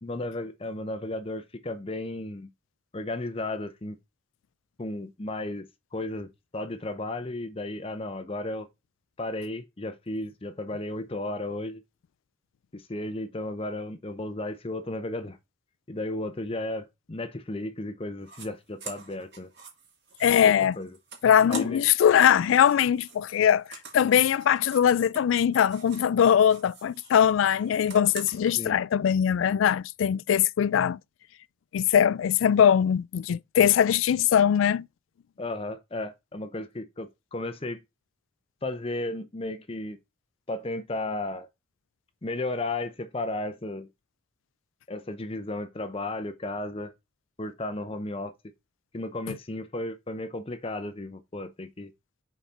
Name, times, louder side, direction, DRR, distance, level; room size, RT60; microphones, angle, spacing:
voice 1, 0.0-2.5 2.9-4.0 4.8-8.7 9.2-11.8 12.7-15.4 15.9-19.5 20.3-20.9 21.5-21.8 28.6-28.8 35.4-37.8 38.6-40.0 40.5-41.5 42.2-43.9 44.9-46.9 47.4-48.3 48.9-51.9, left 2 dB, 30° left, 0.7 m, -34 dB
sound 1, 18.2-18.5 18.8-22.0 22.3-26.2 26.4-28.5, right 5 dB, 55° right, 2.3 m, -45 dB
voice 2, 20.2-20.8 21.2-23.6 23.9-31.0 31.7-34.9, left 9 dB, 85° left, 0.3 m, -21 dB
5.7 x 4.3 x 5.7 m
head